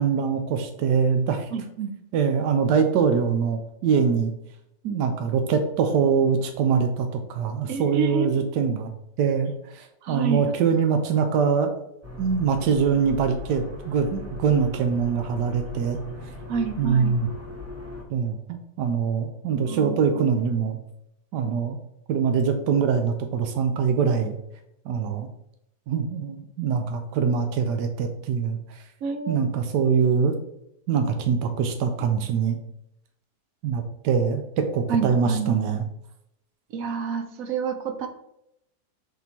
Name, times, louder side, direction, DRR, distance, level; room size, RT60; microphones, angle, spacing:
voice 1, 0.0-1.5 2.1-4.3 4.8-8.9 9.2-11.7 12.2-16.0 16.8-17.3 18.1-20.8 21.3-21.8 22.1-24.4 24.9-25.3 25.9-28.6 29.3-30.4 30.9-32.6 33.6-35.8, right 6 dB, 90° right, 7 dB, 1.2 m, -23 dB
voice 2, 1.5-1.9 7.7-8.3 10.0-10.4 16.5-17.1 19.7-20.0 29.0-29.4 34.9-35.5 36.7-38.1, right 5 dB, 65° right, 8 dB, 0.9 m, -28 dB
sound 1, 12.0-18.0, left 1 dB, 15° right, 0.7 m, -39 dB
5.8 x 3.7 x 4.3 m, 0.79 s
omnidirectional pair, 1.8 m